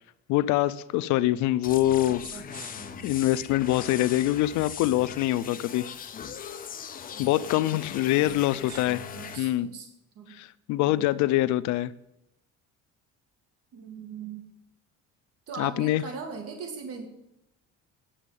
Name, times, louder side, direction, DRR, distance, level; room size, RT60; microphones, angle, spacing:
voice 1, 0.3-2.2 3.0-5.9 7.2-9.0 9.4-9.7 10.3-11.9 15.6-16.0, left 15 dB, 75° left, 15 dB, 0.5 m, -24 dB
sound 1, 1.6-9.4, left 7 dB, 30° left, 0.8 m, -40 dB
voice 2, 2.1-3.2 8.5-9.9 10.2-10.3 10.8-11.1 13.7-14.4 15.5-17.1, right 5 dB, 55° right, 4 dB, 2.0 m, -40 dB
10.0 x 7.4 x 9.2 m, 0.85 s
cardioid pair, 160°, 29 cm